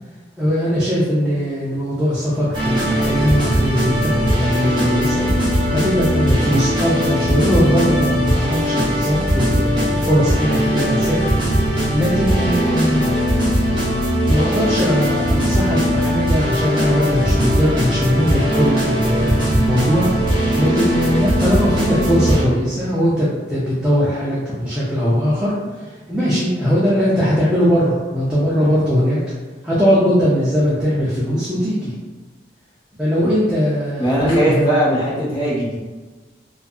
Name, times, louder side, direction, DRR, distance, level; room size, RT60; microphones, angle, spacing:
voice 1, 0.4-5.3 5.7-11.2 11.6-13.2 14.2-29.2 29.6-31.9 33.0-34.6, equal, 5° right, -10 dB, 0.4 m, -20 dB
sound 1, 2.5-22.4, equal, 25° right, 0.7 m, -19 dB
voice 2, 34.0-35.8, right 1 dB, 25° left, -9 dB, 0.9 m, -19 dB
2.6 x 2.3 x 2.3 m, 1.3 s
head